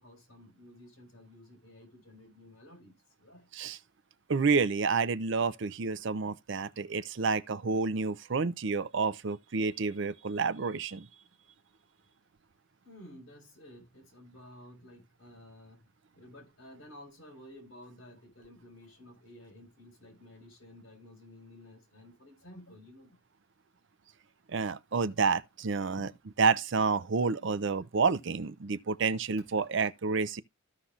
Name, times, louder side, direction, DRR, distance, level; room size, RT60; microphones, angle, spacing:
voice 1, 0.0-3.5 12.8-15.9 16.1-23.2 26.0-26.2 29.4-29.7, left 1 dB, 65° left, 4.3 m, -53 dB
voice 2, 4.3-11.1 24.5-26.1 26.4-30.4, right 4 dB, 60° right, 0.5 m, -29 dB
14.5 x 5.7 x 2.4 m
head